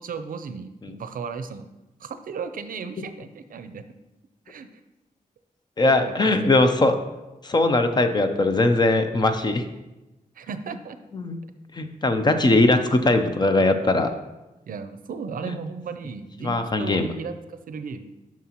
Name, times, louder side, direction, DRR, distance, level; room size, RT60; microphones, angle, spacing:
voice 1, 0.0-1.7 2.0-3.8 4.5-4.7 5.8-6.2 6.4-6.5 10.4-11.0 14.7-18.1, right 5 dB, 70° right, 10 dB, 0.5 m, -35 dB
voice 2, 5.8-7.0 7.4-9.6 11.1-11.4 11.7-14.1 15.4-15.5 16.4-17.1, left 2 dB, 30° left, 7 dB, 0.6 m, -20 dB
11.0 x 5.9 x 2.9 m, 1.0 s
wide cardioid pair, 165°, 15 cm